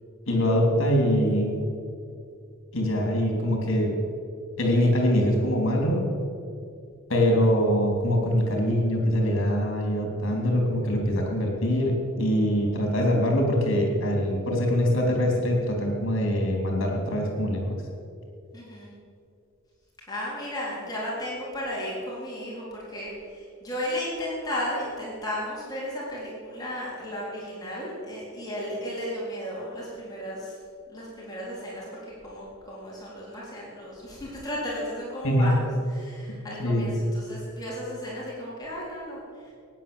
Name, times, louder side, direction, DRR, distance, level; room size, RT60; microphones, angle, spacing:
voice 1, 0.3-1.6 2.7-3.9 4.6-6.1 7.1-17.8 35.2-35.5 36.6-36.9, equal, 60° left, 1 dB, 3.3 m, -23 dB
voice 2, 18.5-18.9 20.1-30.6 30.9-39.5, equal, 20° left, -6 dB, 3.7 m, -34 dB
16.0 x 9.8 x 7.1 m, 2.4 s
head